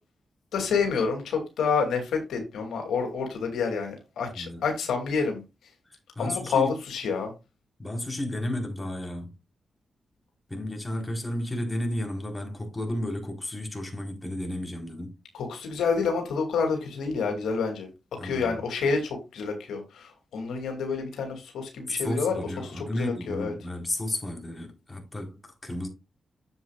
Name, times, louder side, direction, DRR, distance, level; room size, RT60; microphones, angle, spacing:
voice 1, 0.5-5.4 6.2-7.3 15.3-17.9 18.2-23.5, left 5 dB, 90° left, 2.5 m, -28 dB
voice 2, 6.2-6.7 7.8-9.4 10.5-15.1 18.2-18.6 22.0-25.9, left 1 dB, 20° left, 4.0 m, -32 dB
9.7 x 7.7 x 2.4 m
cardioid pair, 55°, 0 cm